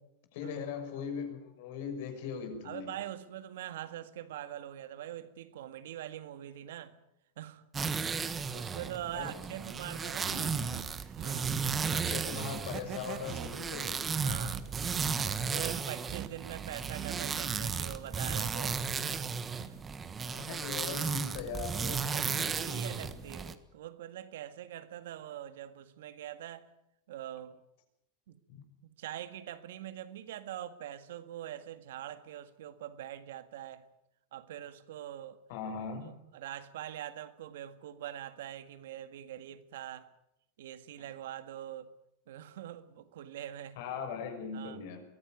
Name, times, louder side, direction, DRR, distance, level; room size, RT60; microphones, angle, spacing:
voice 1, 0.3-2.9 9.1-9.3 10.3-10.9 11.9-14.1 20.2-23.0 28.5-28.6 35.5-36.1 43.8-45.0, left 6 dB, 65° left, 6.2 m, -40 dB
voice 2, 2.6-7.0 7.4-7.6 7.9-10.4 11.2-11.6 14.2-14.7 15.2-19.8 22.1-26.7 27.1-27.6 28.3-28.4 28.8-33.8 34.3-35.4 36.0-40.1 40.6-41.9 42.3-43.8 44.5-44.8, right 12 dB, 80° right, 1.8 m, -43 dB
sound 1, 7.7-23.5, right 5 dB, 20° right, 1.4 m, -35 dB
sound 2, 10.1-17.8, right 11 dB, 35° right, 1.1 m, -43 dB
23.0 x 15.5 x 9.4 m
supercardioid pair, 145°, 0 cm